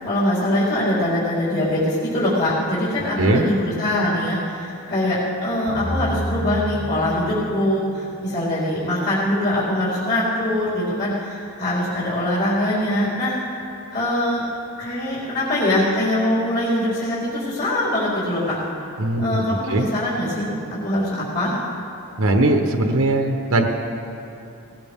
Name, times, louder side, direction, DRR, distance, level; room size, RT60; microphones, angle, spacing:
voice 1, 0.0-13.4 13.9-14.4 14.8-18.6 19.2-20.5 20.8-21.5, left 1 dB, 45° left, -10 dB, 4.2 m, -22 dB
sound 1, 5.7-8.1, left 1 dB, 75° left, 3.8 m, -29 dB
voice 2, 19.0-19.4 19.7-19.9 22.2-23.7, right 2 dB, 75° right, 3 dB, 1.1 m, -19 dB
19.5 x 18.0 x 3.7 m, 2.7 s
head